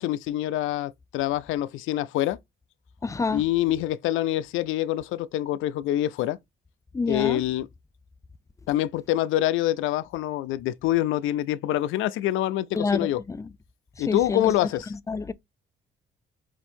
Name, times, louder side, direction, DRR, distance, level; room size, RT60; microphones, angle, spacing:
voice 1, 0.0-2.4 3.3-6.4 7.1-7.7 8.7-13.2 14.0-14.9, left 13 dB, 85° left, 0.4 m, -26 dB
voice 2, 3.0-3.4 6.9-7.4 12.8-13.5 14.1-14.4 15.1-15.3, left 4 dB, 15° left, 0.3 m, -27 dB
4.5 x 2.6 x 4.3 m
cardioid pair, 90°, 20 cm